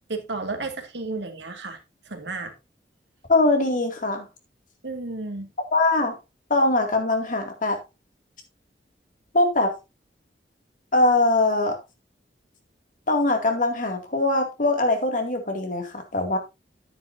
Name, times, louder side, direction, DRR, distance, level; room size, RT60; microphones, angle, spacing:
voice 1, 0.1-1.8 2.1-2.5 4.8-5.5, right 3 dB, 85° right, 2.1 m, -32 dB
voice 2, 3.3-4.3 5.7-6.2 6.5-7.8 9.3-9.8 10.9-11.8 13.1-16.4, left 2 dB, 50° left, 2.3 m, -22 dB
10.5 x 9.4 x 2.7 m
head